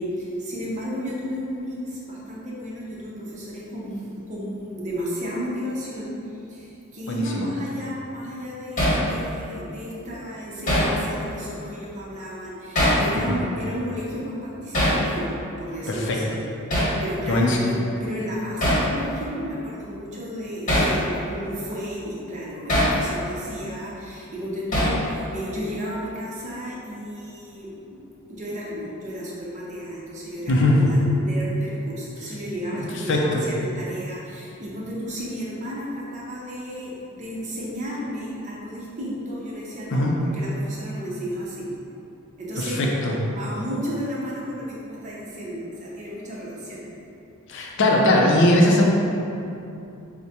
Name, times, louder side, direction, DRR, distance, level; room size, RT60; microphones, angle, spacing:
voice 1, 0.0-16.4 16.7-28.0 28.3-41.7 42.4-42.8 43.3-46.8, equal, 35° right, -6 dB, 0.7 m, -33 dB
voice 2, 7.1-7.5 13.2-13.4 15.9-16.2 17.3-17.6 30.5-30.8 32.7-33.4 39.9-40.1 42.6-43.1 47.5-48.9, left 1 dB, 60° left, -1 dB, 0.5 m, -20 dB
Hammer, 8.8-9.0 10.7-10.9 12.7-13.1 14.7-15.0 16.7-17.0 18.6-18.9 20.7-20.9 22.7-23.0 24.7-25.0, equal, 35° left, 1.2 m, -20 dB
4.6 x 2.1 x 2.8 m, 2.7 s
head